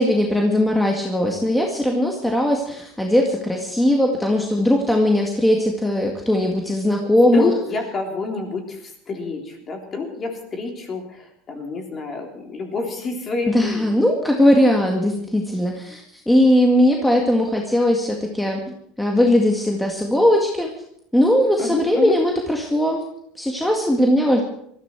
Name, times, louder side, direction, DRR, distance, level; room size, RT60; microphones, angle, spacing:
voice 1, 0.0-7.5 13.5-20.7 21.1-23.0 23.4-24.4, left 1 dB, 5° left, 1 dB, 1.9 m, -19 dB
voice 2, 7.2-14.1 21.6-22.2, left 4 dB, 30° left, 3 dB, 3.6 m, -28 dB
19.5 x 14.0 x 4.6 m, 0.71 s
supercardioid pair, 135°, 0 cm